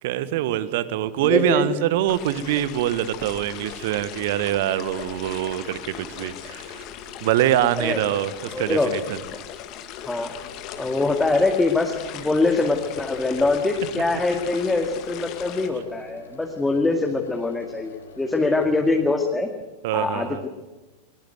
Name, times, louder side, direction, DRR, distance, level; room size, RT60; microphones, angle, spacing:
voice 1, 0.0-6.8 7.2-9.2 19.8-20.4, right 12 dB, 50° right, 15 dB, 1.4 m, -24 dB
voice 2, 1.2-1.7 7.8-8.0 8.5-8.9 10.0-10.4 10.8-19.5 19.9-20.5, left 3 dB, 10° left, 2 dB, 2.3 m, -23 dB
sound 1, 2.1-15.7, left 9 dB, 40° left, 2.2 m, -38 dB
sound 2, 10.3-19.0, left 3 dB, 70° left, 4.8 m, -46 dB
21.5 x 21.0 x 8.0 m, 1.1 s
figure-of-eight pair, 90°, 0 cm